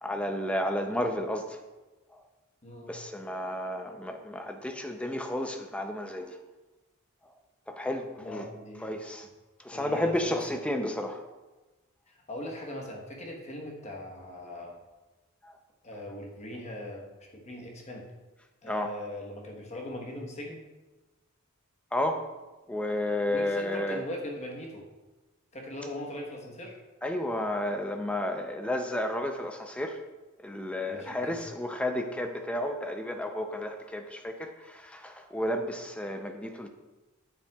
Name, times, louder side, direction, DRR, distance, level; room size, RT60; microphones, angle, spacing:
voice 1, 0.0-1.6 2.1-2.2 2.9-6.4 7.7-8.5 8.8-9.3 9.6-11.2 15.4-15.5 18.6-18.9 21.9-22.3 22.7-24.0 27.0-30.0 30.4-36.7, left 1 dB, 5° left, 5 dB, 0.5 m, -32 dB
voice 2, 2.6-3.0 8.2-9.0 9.7-10.6 12.1-14.8 15.8-18.1 18.6-20.6 23.3-24.9 25.5-26.8 30.9-31.4, left 1 dB, 30° left, 0 dB, 1.1 m, -40 dB
8.9 x 7.5 x 2.3 m, 1.2 s
head